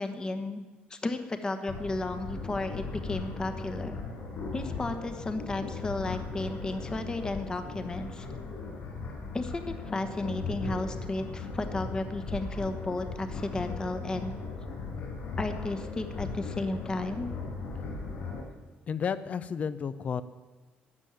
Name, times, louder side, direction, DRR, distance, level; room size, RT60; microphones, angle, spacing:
voice 1, 0.0-4.0 4.5-8.3 9.3-14.3 15.4-17.3, left 2 dB, 20° left, 8 dB, 1.1 m, -33 dB
sound 1, 1.7-18.4, left 4 dB, 55° left, 5.4 m, -38 dB
voice 2, 18.9-20.2, left 6 dB, 40° left, 15 dB, 0.6 m, -32 dB
12.5 x 7.3 x 8.9 m, 1.3 s
cardioid pair, 135°, 4 cm